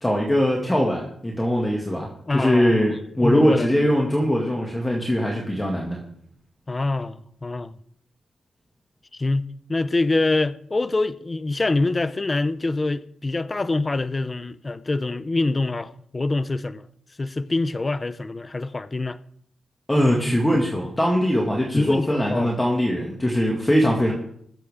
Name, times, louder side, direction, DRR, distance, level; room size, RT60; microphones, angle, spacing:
voice 1, 0.0-6.0 19.9-24.1, equal, 15° left, 2.1 m, -21 dB
voice 2, 2.3-2.8 3.2-3.7 6.7-7.7 9.1-16.8 17.2-19.2 21.7-22.5, left 2 dB, 30° left, 0.6 m, -25 dB
21.5 x 7.6 x 3.6 m
cardioid pair, 80°, 0 cm